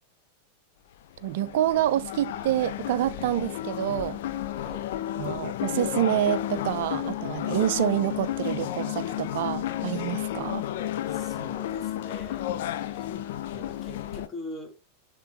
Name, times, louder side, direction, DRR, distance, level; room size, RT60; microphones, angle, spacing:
sound 1, 1.2-14.3, left 12 dB, 55° left, 0.5 m, -32 dB
voice 1, 1.2-4.2 5.2-10.6, right 12 dB, 55° right, 0.5 m, -27 dB
voice 2, 11.1-13.1 13.5-14.8, left 1 dB, 15° left, 1.8 m, -43 dB
10.0 x 3.7 x 2.8 m
figure-of-eight pair, 90°, 0 cm